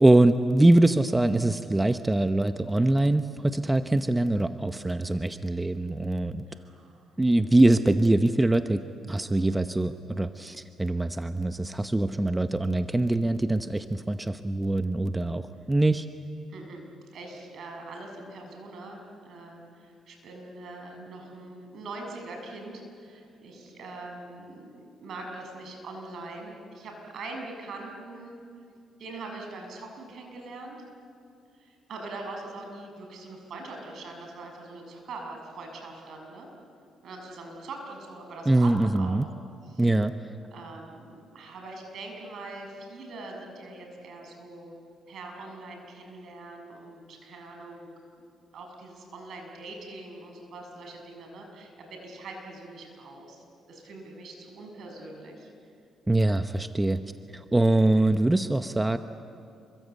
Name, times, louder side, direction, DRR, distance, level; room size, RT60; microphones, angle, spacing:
voice 1, 0.0-6.4 7.2-8.8 9.1-16.1 38.5-39.3 39.8-40.1 56.1-57.0 57.3-59.0, right 2 dB, 15° right, 9 dB, 0.8 m, -23 dB
voice 2, 6.5-7.1 16.5-16.8 17.1-24.7 25.0-28.4 29.0-30.8 31.5-36.5 37.0-39.2 39.6-39.9 40.5-44.7 45.1-47.9 48.2-48.3 48.5-55.5, right 2 dB, 65° right, 3 dB, 6.7 m, -42 dB
28.0 x 24.0 x 8.3 m, 2.5 s
cardioid pair, 90°, 0 cm